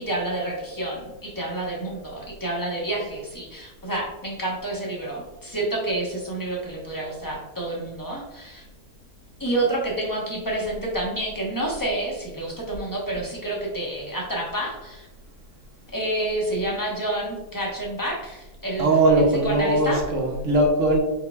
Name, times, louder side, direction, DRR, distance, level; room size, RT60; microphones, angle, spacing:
voice 1, 0.0-8.6 9.4-15.1 15.9-18.9 19.4-20.0, right 1 dB, 15° left, -3 dB, 0.8 m, -29 dB
voice 2, 18.8-21.0, right 2 dB, 55° right, 1 dB, 1.1 m, -20 dB
4.8 x 4.5 x 2.3 m, 1.1 s
omnidirectional pair, 1.7 m